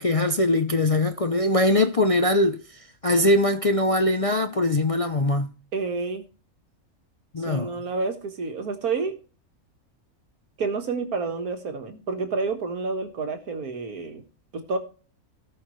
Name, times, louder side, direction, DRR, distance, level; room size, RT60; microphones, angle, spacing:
voice 1, 0.0-2.6 3.0-5.5 7.3-7.7, left 1 dB, 40° left, 0.5 m, -21 dB
voice 2, 5.7-6.2 7.5-9.2 10.6-14.2 14.5-14.8, right 4 dB, 85° right, 2.0 m, -29 dB
17.5 x 6.0 x 3.1 m
omnidirectional pair, 1.5 m